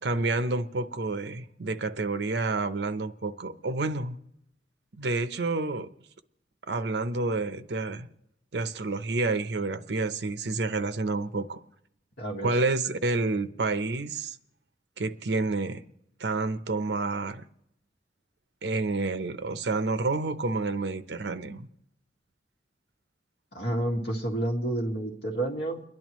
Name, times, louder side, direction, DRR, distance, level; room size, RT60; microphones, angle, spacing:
voice 1, 0.0-4.2 4.9-5.9 6.7-8.1 8.5-11.6 12.4-14.4 15.0-15.8 16.2-17.4 18.6-21.7, right 3 dB, 75° right, 0.7 m, -29 dB
voice 2, 12.2-12.5 23.5-25.8, right 1 dB, 70° left, 1.8 m, -29 dB
30.0 x 10.5 x 3.1 m
head